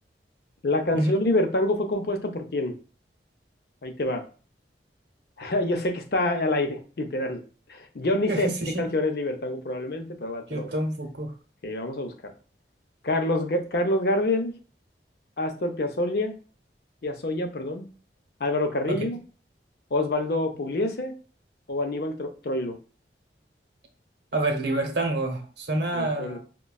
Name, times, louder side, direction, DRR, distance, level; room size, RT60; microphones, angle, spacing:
voice 1, 0.6-2.8 3.8-4.2 5.4-7.4 7.7-8.5 8.8-10.7 11.6-12.3 13.0-14.5 15.4-16.3 17.0-17.9 18.4-19.2 19.9-21.1 21.7-22.8 25.9-26.4, left 1 dB, 60° left, 5 dB, 0.5 m, -26 dB
voice 2, 8.3-8.8 10.5-11.3 18.9-19.0 24.3-26.4, right 2 dB, 75° right, 4 dB, 0.8 m, -27 dB
5.1 x 2.2 x 2.2 m, 0.37 s
head